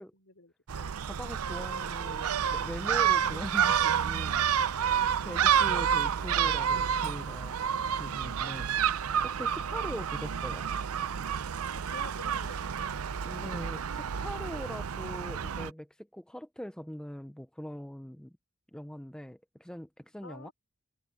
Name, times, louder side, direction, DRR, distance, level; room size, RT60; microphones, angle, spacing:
voice 1, 0.1-1.0 4.9-5.2 9.4-9.9 11.7-13.7 20.2-20.5, left 2 dB, 65° left, 4.5 m, -50 dB
Gull seagull, 0.7-15.7, right 8 dB, 85° right, 0.6 m, -29 dB
voice 2, 1.0-4.9 5.2-7.5 8.0-8.7 9.2-10.7 13.2-18.4 18.7-20.5, equal, 5° left, 0.5 m, -42 dB
head